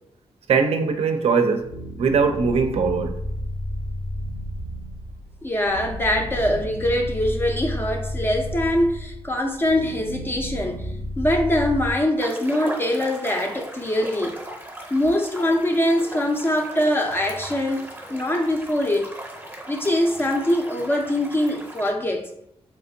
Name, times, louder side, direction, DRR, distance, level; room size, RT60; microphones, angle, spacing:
voice 1, 0.5-1.7 2.0-3.1, right 5 dB, 70° right, 0.4 m, -20 dB
sound 1, 1.6-11.9, equal, 85° left, 0.8 m, -32 dB
voice 2, 5.4-10.9 11.2-14.4 14.9-19.1 19.7-22.3, left 1 dB, 20° left, 0.3 m, -23 dB
sound 2, 12.2-21.9, right 1 dB, 15° right, 0.6 m, -38 dB
3.5 x 3.1 x 2.6 m
wide cardioid pair, 155°, 11 cm